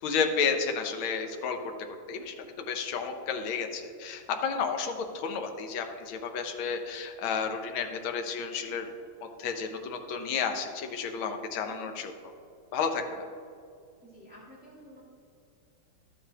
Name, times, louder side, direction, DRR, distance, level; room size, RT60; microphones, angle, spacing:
voice 1, 0.0-1.6 2.1-8.9 9.4-12.1 12.7-13.0, left 6 dB, 70° left, 5 dB, 1.6 m, -31 dB
voice 2, 14.0-15.0, equal, 5° right, -7 dB, 1.9 m, -51 dB
12.0 x 8.0 x 2.9 m, 2.5 s
omnidirectional pair, 2.4 m